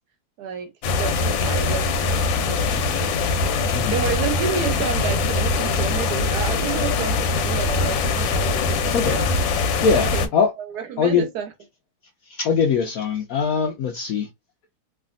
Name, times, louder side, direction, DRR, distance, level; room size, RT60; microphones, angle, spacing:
voice 1, 0.4-0.7 1.0-3.2 3.9-9.3 10.0-10.3 10.6-11.5, right 7 dB, 70° right, 1.0 m, -30 dB
sound 1, 0.8-10.3, left 4 dB, 85° left, 1.4 m, -22 dB
voice 2, 9.8-10.5 11.0-11.3 12.3-14.3, left 6 dB, 70° left, 0.8 m, -21 dB
3.3 x 2.4 x 2.5 m
omnidirectional pair, 2.0 m